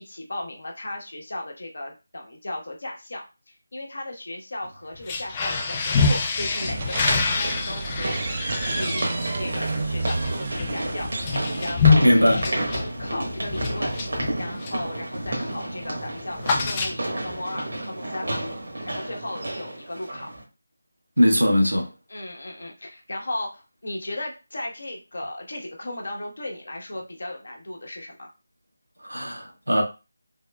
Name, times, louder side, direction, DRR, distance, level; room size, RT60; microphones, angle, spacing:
voice 1, 0.0-9.1 9.4-12.7 13.0-13.9 14.4-18.4 18.9-20.3 22.1-28.3, left 1 dB, 60° left, 0.9 m, -36 dB
sound 1, 4.6-4.7 6.6-20.4, right 1 dB, 60° right, 1.2 m, -31 dB
sound 2, 4.9-14.9 15.2-15.5 15.8-17.4, left 4 dB, 20° left, 0.4 m, -26 dB
sound 3, 6.7-11.7, right 3 dB, 35° right, 0.5 m, -31 dB
voice 2, 12.0-12.5 21.2-21.9 29.0-29.8, equal, 85° right, 1.1 m, -20 dB
3.6 x 3.1 x 2.2 m
figure-of-eight pair, 160°, 0 cm